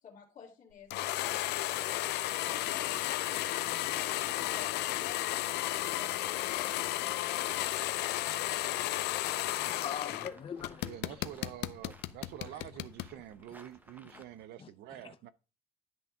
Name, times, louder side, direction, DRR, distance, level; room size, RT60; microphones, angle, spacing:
voice 1, 0.0-3.7 4.3-5.3 5.7-7.6, left 7 dB, 50° left, 2.3 m, -53 dB
sound 1, 0.9-10.3 10.6-13.1, left 15 dB, 80° left, 0.6 m, -33 dB
sound 2, 3.9-14.5, right 1 dB, 10° right, 1.0 m, -58 dB
voice 2, 9.7-11.0 14.1-14.2 14.6-15.2, left 8 dB, 35° left, 0.7 m, -42 dB
voice 3, 10.8-15.3, right 12 dB, 75° right, 0.5 m, -47 dB
10.5 x 3.5 x 5.4 m
cardioid pair, 110°, 17 cm